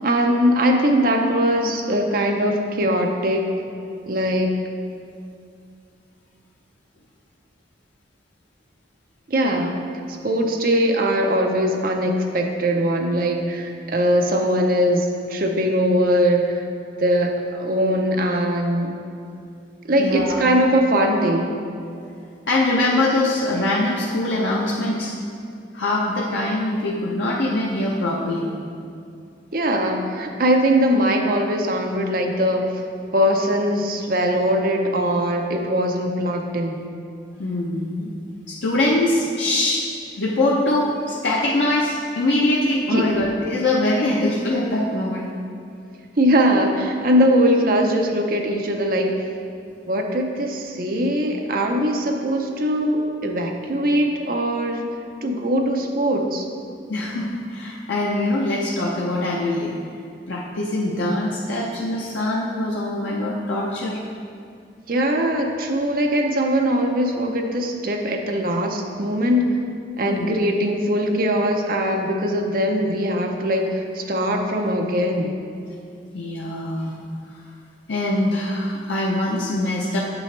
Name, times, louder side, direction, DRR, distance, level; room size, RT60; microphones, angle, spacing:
voice 1, 0.0-3.4 4.1-4.5 9.3-9.8 10.2-16.7 17.0-19.0 19.8-21.5 29.5-32.8 33.1-36.9 42.9-43.2 46.2-49.3 49.9-54.9 55.2-56.5 64.9-69.6 70.0-75.4, equal, 50° right, 2 dB, 0.7 m, -21 dB
voice 2, 20.0-20.4 22.5-25.1 25.7-28.5 37.4-38.1 38.5-39.9 40.2-45.3 56.9-59.7 60.3-64.0 70.0-70.3 76.1-76.9 77.9-80.0, left 1 dB, 75° left, -3 dB, 0.7 m, -23 dB
7.6 x 6.2 x 3.2 m, 2.5 s
head